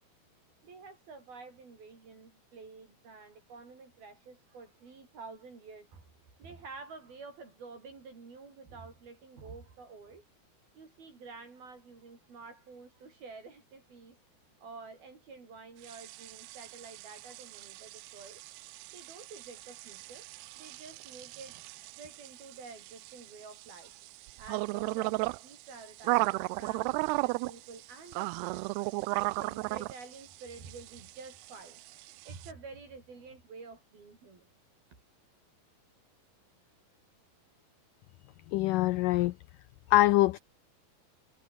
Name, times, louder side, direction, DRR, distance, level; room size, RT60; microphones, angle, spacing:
voice 1, 0.6-6.1 6.4-10.3 10.7-14.2 14.6-18.4 18.9-20.3 20.6-21.5 22.0-24.0 24.4-28.6 29.1-34.5, right 4 dB, 65° right, 7.9 m, -49 dB
sound 1, 15.8-32.5, right 23 dB, 90° right, 2.6 m, -36 dB
voice 2, 38.5-39.3 39.9-40.4, left 17 dB, 90° left, 1.8 m, -24 dB
omnidirectional pair, 4.6 m